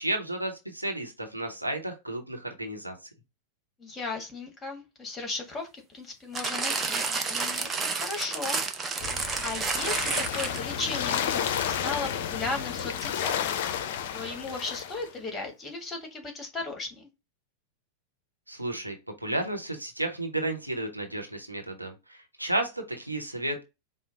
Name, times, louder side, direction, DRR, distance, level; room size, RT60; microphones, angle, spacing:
voice 1, 0.0-2.9 18.5-19.0 19.2-23.6, right 1 dB, 85° right, 3 dB, 0.9 m, -32 dB
voice 2, 3.8-8.6 9.4-13.4 14.1-17.1, left 3 dB, 20° left, 3 dB, 1.5 m, -36 dB
sound 1, 6.4-10.8 11.5-11.6, right 4 dB, 20° right, 0.6 m, -30 dB
sound 2, 9.0-15.1, left 9 dB, 50° left, 0.5 m, -31 dB
4.9 x 2.1 x 3.8 m, 0.25 s
figure-of-eight pair, 90°, 0 cm